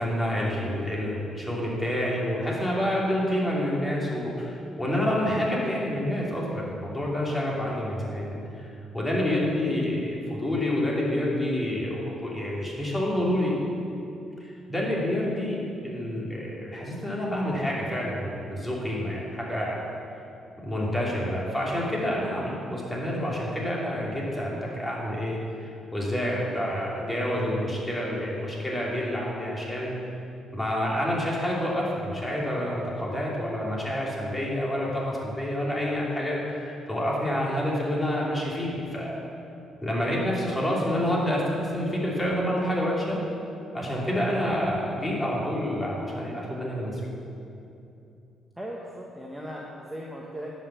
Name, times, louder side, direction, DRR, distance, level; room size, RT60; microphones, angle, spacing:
voice 1, 0.0-8.7 8.9-13.5 14.4-19.9 20.6-29.9 30.5-39.2 39.8-43.2 43.7-47.0, left 1 dB, 15° left, -4 dB, 2.8 m, -28 dB
voice 2, 48.6-50.6, equal, 5° right, -3 dB, 1.1 m, -38 dB
10.5 x 5.5 x 7.2 m, 2.7 s
cardioid pair, 90°, 0 cm